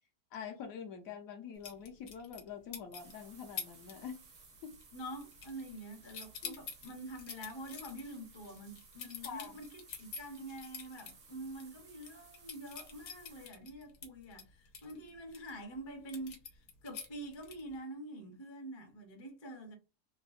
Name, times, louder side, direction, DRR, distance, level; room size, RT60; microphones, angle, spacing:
voice 1, 0.3-4.2 4.6-4.8 6.4-6.6 9.2-9.6, left 7 dB, 70° left, 1.0 m, -45 dB
sound 1, 1.6-2.5 2.7-3.1 3.6-3.9 4.2-4.6 4.8-5.8 6.1-11.1 11.5-11.6 12.0-15.5 16.1-17.8, left 6 dB, 85° left, 1.3 m, -46 dB
sound 2, 3.0-13.5, right 4 dB, 60° right, 0.4 m, -59 dB
voice 2, 4.9-19.7, right 1 dB, 40° left, 0.4 m, -46 dB
3.6 x 2.1 x 2.4 m
omnidirectional pair, 1.7 m